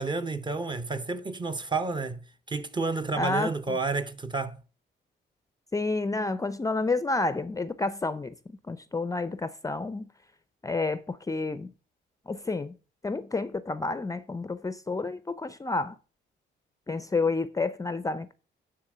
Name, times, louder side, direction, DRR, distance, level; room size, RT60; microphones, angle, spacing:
voice 1, 0.0-4.6, right 3 dB, 25° right, 0.7 m, -30 dB
voice 2, 3.1-3.8 5.7-8.3 8.7-10.1 10.6-11.7 12.3-12.8 13.0-16.0 16.9-18.3, left 3 dB, 15° left, 0.5 m, -30 dB
9.8 x 3.6 x 6.1 m
cardioid pair, 90°, 20 cm